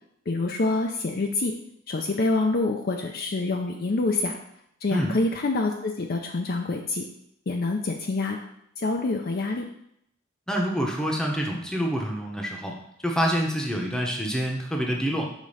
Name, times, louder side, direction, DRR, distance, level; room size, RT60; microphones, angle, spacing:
voice 1, 0.3-1.5 1.9-4.4 4.8-7.1 7.5-8.4 8.8-9.6, left 3 dB, 50° left, 3 dB, 0.5 m, -26 dB
voice 2, 10.5-12.7 13.0-15.2, equal, 5° left, 0 dB, 0.8 m, -26 dB
5.1 x 3.7 x 5.5 m, 0.75 s
head